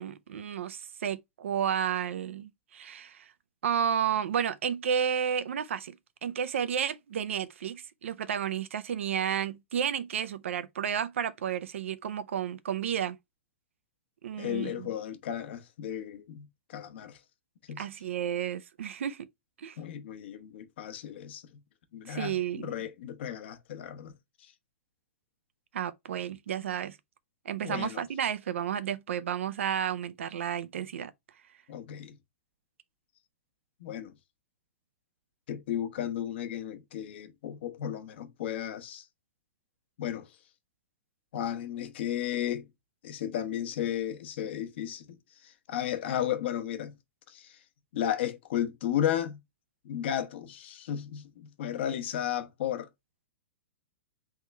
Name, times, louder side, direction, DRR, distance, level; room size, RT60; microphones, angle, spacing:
voice 1, 0.0-3.3 3.6-5.9 6.2-13.2 14.2-14.9 17.8-19.3 19.6-19.8 22.1-22.7 25.7-27.0 27.5-31.1, right 8 dB, 80° right, 0.5 m, -32 dB
voice 2, 14.4-17.2 17.7-17.8 19.8-21.4 21.9-24.1 24.4-24.5 27.6-28.0 31.7-32.2 33.8-34.1 35.5-39.0 40.0-40.3 41.3-42.7 43.0-45.2 45.4-46.9 47.3-47.6 47.9-49.4 49.8-52.9, left 10 dB, 60° left, 1.0 m, -34 dB
3.6 x 3.1 x 3.3 m
hypercardioid pair, 145°, 7 cm